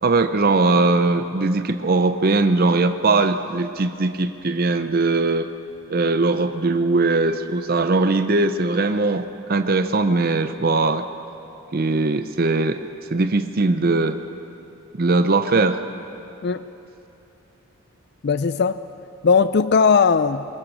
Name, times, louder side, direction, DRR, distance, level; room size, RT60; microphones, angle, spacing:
voice 1, 0.0-5.5 5.9-11.1 11.7-12.8 13.1-14.2 14.9-15.8, right 3 dB, 45° right, 9 dB, 0.6 m, -20 dB
voice 2, 18.2-18.8 19.2-20.5, left 5 dB, 50° left, 13 dB, 0.4 m, -18 dB
23.0 x 20.5 x 6.3 m, 2.9 s
head